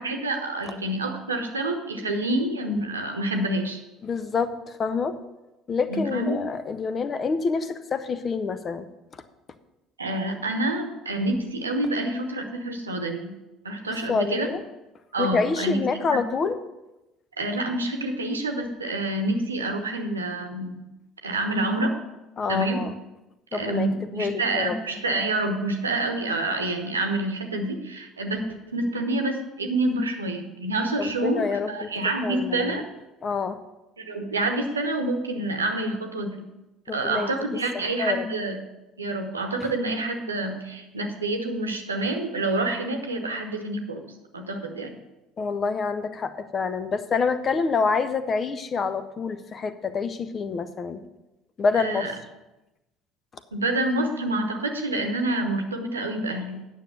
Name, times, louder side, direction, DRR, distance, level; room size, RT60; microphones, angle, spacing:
voice 1, 0.0-3.8 5.9-6.4 10.0-13.3 13.6-14.5 15.1-15.8 16.1-16.2 17.4-20.8 21.2-21.9 22.5-22.8 23.5-28.4 28.7-32.8 34.0-36.5 36.9-38.6 39.0-44.1 44.3-44.9 51.8-52.1 53.5-56.6, right 2 dB, 85° right, 5 dB, 0.9 m, -27 dB
voice 2, 4.0-5.2 5.7-8.9 9.1-9.2 13.9-14.6 15.2-16.6 22.4-22.9 23.5-24.8 31.0-31.9 32.2-32.8 33.2-33.6 36.9-37.3 38.0-38.3 45.4-51.0 51.6-52.1, left 5 dB, 35° left, 12 dB, 0.7 m, -27 dB
9.3 x 6.4 x 6.7 m, 1.0 s
figure-of-eight pair, 55°, 0 cm